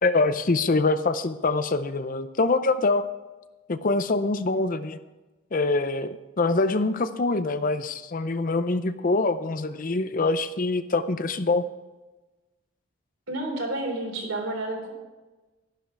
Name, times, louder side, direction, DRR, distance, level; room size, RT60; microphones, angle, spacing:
voice 1, 0.0-3.1 3.7-5.0 5.5-11.6, left 3 dB, 40° left, 12 dB, 0.5 m, -24 dB
voice 2, 13.3-14.9, right 2 dB, 70° right, 0 dB, 3.8 m, -30 dB
12.5 x 11.5 x 4.7 m, 1.2 s
head